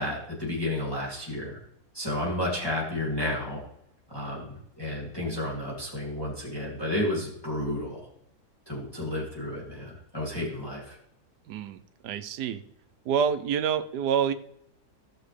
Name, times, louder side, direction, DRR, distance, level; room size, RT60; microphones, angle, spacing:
voice 1, 0.0-1.6 1.9-3.6 4.1-8.1 8.7-11.0, left 1 dB, 15° left, -5 dB, 2.3 m, -31 dB
voice 2, 11.5-12.6 13.1-14.3, right 7 dB, 85° right, 11 dB, 1.3 m, -27 dB
16.0 x 6.8 x 3.2 m, 0.77 s
omnidirectional pair, 1.7 m